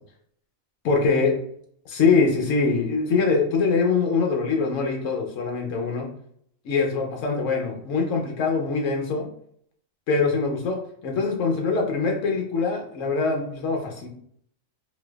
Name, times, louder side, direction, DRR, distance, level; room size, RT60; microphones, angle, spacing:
voice 1, 0.8-1.3 1.9-6.1 6.6-9.3 10.1-10.8 11.0-14.1, left 4 dB, 70° left, 2 dB, 1.1 m, -23 dB
4.0 x 2.6 x 2.3 m, 0.66 s
omnidirectional pair, 1.4 m